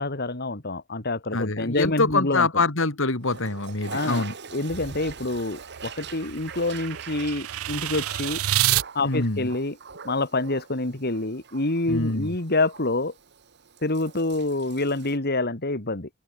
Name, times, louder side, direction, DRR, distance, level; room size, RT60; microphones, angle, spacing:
voice 1, 0.0-2.6 3.9-4.3 4.5-8.4 8.9-9.8 10.0-13.1 13.8-16.1, left 2 dB, 50° left, 2.6 m, -27 dB
voice 2, 1.3-4.3 9.0-9.5 11.9-12.3, left 3 dB, 65° left, 2.6 m, -25 dB
Toilet flush, 3.2-15.2, right 5 dB, 55° right, 2.1 m, -43 dB
sound 1, 5.2-8.8, right 13 dB, 85° right, 0.5 m, -28 dB
head